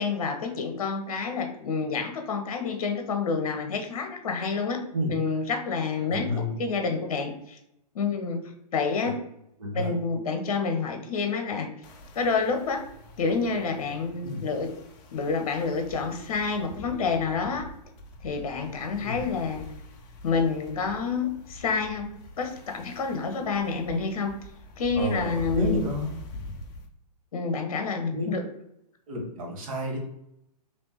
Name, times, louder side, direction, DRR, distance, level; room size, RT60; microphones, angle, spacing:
voice 1, 0.0-4.8 5.1-7.6 7.9-8.4 8.7-9.2 9.7-11.7 12.1-12.8 13.2-14.7 15.1-17.7 18.2-19.6 20.2-22.1 22.4-24.3 24.8-25.7 27.3-28.4, left 4 dB, 60° left, 5 dB, 0.7 m, -28 dB
voice 2, 6.1-6.6 9.0-9.1 9.6-9.9 14.2-14.5 19.0-19.2 24.9-26.1 28.1-28.3 29.1-30.0, left 1 dB, 55° right, 0 dB, 1.1 m, -30 dB
sound 1, 11.8-26.9, left 1 dB, 20° left, 0.4 m, -43 dB
3.4 x 2.9 x 2.8 m, 0.80 s
figure-of-eight pair, 120°, 21 cm